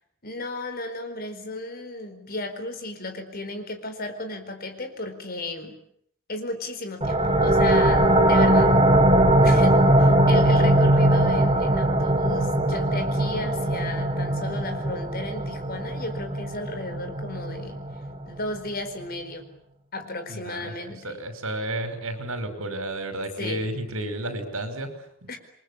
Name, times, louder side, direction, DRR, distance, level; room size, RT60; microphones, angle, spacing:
voice 1, 0.2-5.8 6.3-8.7 9.4-17.8 18.3-19.5 19.9-21.2 23.4-23.6 25.3-25.4, left 2 dB, 45° left, 8 dB, 4.6 m, -34 dB
sound 1, 7.0-18.4, right 1 dB, 25° right, 2.6 m, -20 dB
voice 2, 20.3-25.4, right 1 dB, 75° right, 9 dB, 5.8 m, -32 dB
28.5 x 23.0 x 8.6 m, 0.66 s
head